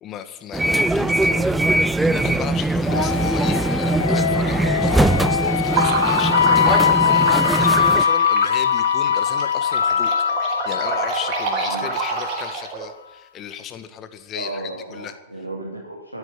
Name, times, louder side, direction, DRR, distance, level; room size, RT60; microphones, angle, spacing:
voice 1, 0.0-1.6 2.0-10.1 10.4-15.1, left 9 dB, 30° left, 10 dB, 1.7 m, -35 dB
sound 1, 0.5-8.0, right 2 dB, 5° right, 0.6 m, -21 dB
sound 2, 2.9-12.5, left 8 dB, 65° left, 0.6 m, -21 dB
sound 3, 5.7-12.9, right 5 dB, 40° right, 4.2 m, -27 dB
voice 2, 14.3-16.2, right 2 dB, 85° right, -3 dB, 2.8 m, -34 dB
13.0 x 10.0 x 9.0 m, 0.95 s
figure-of-eight pair, 90°, 0 cm